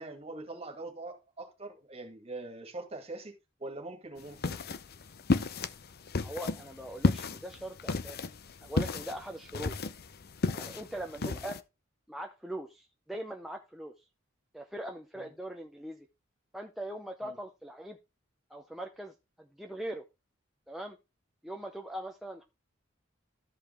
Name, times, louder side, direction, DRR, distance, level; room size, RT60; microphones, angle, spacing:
voice 1, 0.0-3.3 3.6-4.6 11.1-11.4 15.1-15.3 17.2-17.4, right 2 dB, 30° right, 2.3 m, -43 dB
sound 1, 4.2-11.6, left 3 dB, 50° left, 0.6 m, -33 dB
voice 2, 6.2-8.2 8.6-9.8 10.5-11.6 12.1-13.9 14.5-16.1 16.5-18.0 18.5-20.0 20.7-21.0 21.4-22.4, right 1 dB, ahead, 0.7 m, -41 dB
13.0 x 5.2 x 3.5 m
head